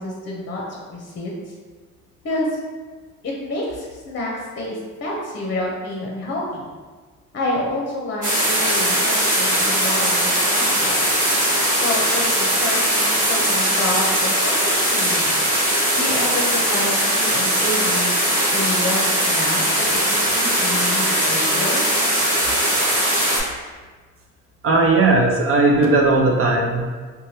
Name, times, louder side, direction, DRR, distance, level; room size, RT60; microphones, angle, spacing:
voice 1, 0.0-1.5 2.2-2.6 3.2-6.7 7.3-11.2 11.8-18.2 18.5-21.8, left 1 dB, 40° left, -2 dB, 0.6 m, -28 dB
sound 1, 8.2-23.4, right 1 dB, 30° right, 1.1 m, -20 dB
voice 2, 24.6-26.9, right 2 dB, 45° right, 0 dB, 0.5 m, -17 dB
3.2 x 2.2 x 2.7 m, 1.4 s
cardioid pair, 90°, 30 cm